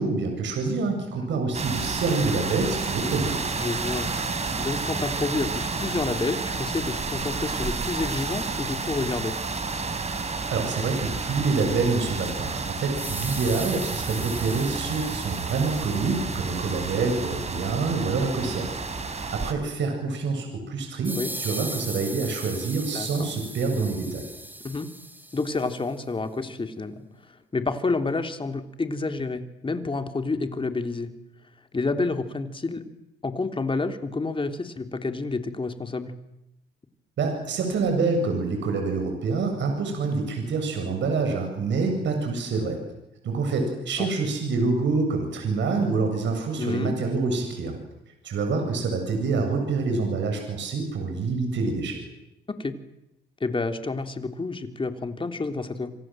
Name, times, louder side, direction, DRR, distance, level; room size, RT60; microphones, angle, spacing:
voice 1, 0.0-3.4 10.5-18.7 19.0-24.3 37.2-42.8 43.2-47.8 48.2-52.0, right 4 dB, 65° right, 4 dB, 7.9 m, -26 dB
sound 1, 1.5-19.5, right 4 dB, 35° right, 4.1 m, -31 dB
voice 2, 3.6-4.1 4.6-9.3 21.1-21.3 22.9-23.3 24.6-24.9 25.3-31.1 31.7-32.8 33.2-36.1 44.0-44.1 46.6-46.9 52.6-52.7 53.4-55.9, left 3 dB, 25° left, 7 dB, 3.4 m, -29 dB
sound 2, 13.0-16.8 21.0-25.8, right 1 dB, 10° right, 3.3 m, -38 dB
28.0 x 26.0 x 7.8 m, 0.87 s
cardioid pair, 90°, 20 cm